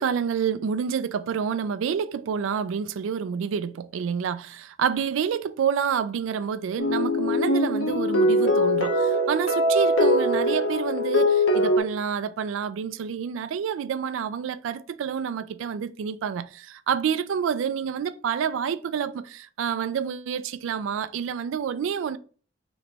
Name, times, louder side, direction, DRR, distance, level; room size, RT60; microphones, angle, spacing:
voice 1, 0.0-22.2, right 7 dB, 75° right, 0.3 m, -28 dB
sound 1, 6.8-11.8, left 1 dB, 80° left, 1.0 m, -22 dB
3.8 x 3.0 x 3.3 m
head